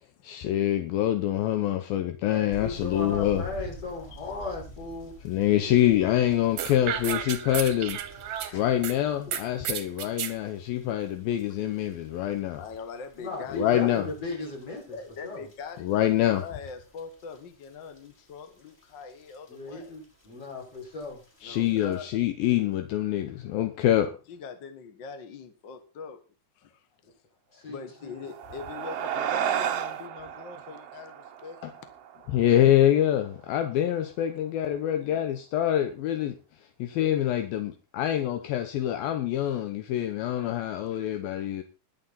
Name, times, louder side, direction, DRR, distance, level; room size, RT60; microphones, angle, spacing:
voice 1, 0.2-3.5 5.2-8.0 8.3-12.6 13.5-14.1 15.8-16.4 21.4-24.1 31.6-31.7 32.3-36.4 36.8-41.6, left 12 dB, 75° left, 2.7 m, -25 dB
voice 2, 2.3-5.1 5.7-5.9 13.2-15.0 15.2-15.4 19.5-21.2 27.5-28.2, left 3 dB, 40° left, 6.6 m, -37 dB
sound 1, 2.5-22.0, right 1 dB, 15° left, 3.8 m, -49 dB
sound 2, 6.6-8.9 9.3-10.3, right 10 dB, 65° right, 1.7 m, -32 dB
voice 3, 8.4-9.4 12.6-13.9 14.9-19.9 21.4-22.1 24.3-26.2 26.5-26.9 27.5-31.9 33.7-33.8 35.0-35.3 40.9-41.0, left 5 dB, 60° left, 1.2 m, -43 dB
sound 3, 28.1-32.9, right 9 dB, 85° right, 1.3 m, -33 dB
21.0 x 7.8 x 4.2 m
omnidirectional pair, 4.3 m